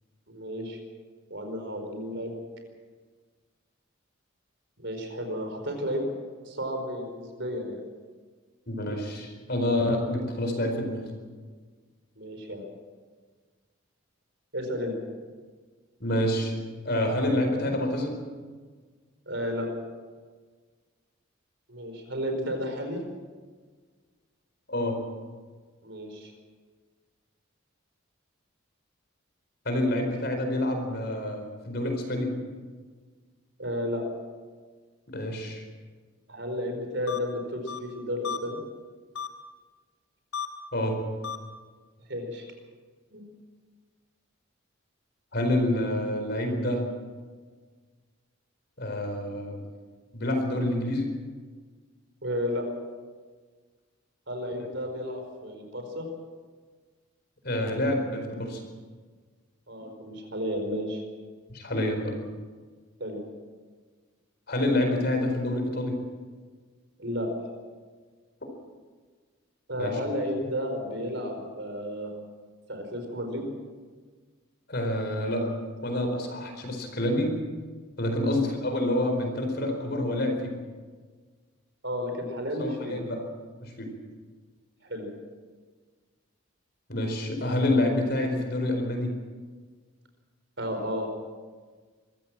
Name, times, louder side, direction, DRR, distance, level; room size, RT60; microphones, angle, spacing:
voice 1, 0.3-0.8 1.3-2.3 4.8-6.1 6.4-7.8 12.2-12.6 14.5-15.0 19.3-19.7 21.7-23.0 25.8-26.3 33.6-34.0 36.3-38.6 42.1-42.4 43.1-43.2 52.2-52.7 54.3-56.1 59.7-61.0 63.0-63.2 67.0-67.3 69.7-72.1 72.7-73.5 75.8-75.9 78.2-78.3 81.8-83.0 84.8-85.1 90.6-91.1, equal, 55° right, 4 dB, 4.7 m, -32 dB
voice 2, 8.7-11.1 16.0-16.5 16.8-18.2 24.7-25.0 29.6-32.3 35.1-35.6 40.7-41.0 45.3-46.8 48.8-49.6 50.1-51.1 57.4-58.6 61.5-62.2 64.5-66.0 69.8-69.9 74.7-75.5 75.8-77.3 78.0-80.5 82.6-83.2 83.6-83.9 86.9-89.2, left 1 dB, 50° left, 4 dB, 4.5 m, -27 dB
sound 1, 37.1-37.2 37.7-37.8 38.2-38.4 39.1-39.3 40.3-40.5 41.2-41.4, left 7 dB, 85° left, 3.1 m, -32 dB
24.0 x 15.5 x 7.5 m, 1.5 s
head